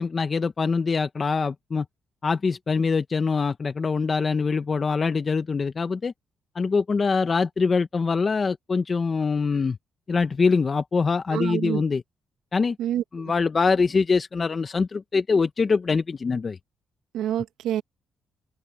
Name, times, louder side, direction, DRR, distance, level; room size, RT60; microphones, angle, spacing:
voice 1, 0.0-1.8 2.2-6.1 6.5-9.8 10.1-12.0 12.5-12.8 13.1-16.6, left 4 dB, 35° left, 1.0 m, -24 dB
voice 2, 11.3-11.8 12.8-13.3 17.1-17.8, right 11 dB, 85° right, 1.6 m, -27 dB
cardioid pair, 90°, 0 cm